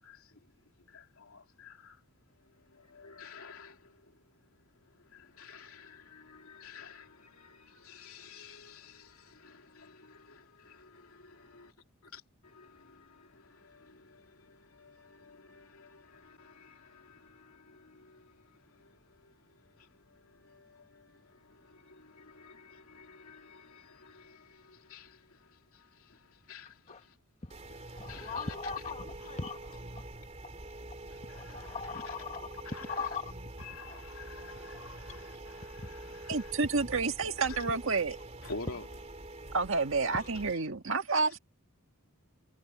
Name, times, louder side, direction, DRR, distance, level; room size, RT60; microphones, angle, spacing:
voice 1, 0.0-2.0 2.4-4.4 4.7-11.7 12.0-27.2 27.9-28.5 29.2-29.4 31.1-32.1 32.6-33.1 33.6-36.5 37.5-37.6 38.4-38.9 41.2-41.3, left 4 dB, 75° left, 3.1 m, -52 dB
sound 1, 27.5-40.5, right 2 dB, 30° right, 2.9 m, -46 dB
voice 2, 28.0-30.0 31.3-33.3 33.9-34.0 34.3-34.8 35.8-35.9 37.2-37.3 40.1-40.3, left 4 dB, 30° left, 1.5 m, -40 dB
voice 3, 36.3-38.2 39.5-41.4, right 4 dB, 65° right, 1.8 m, -29 dB
head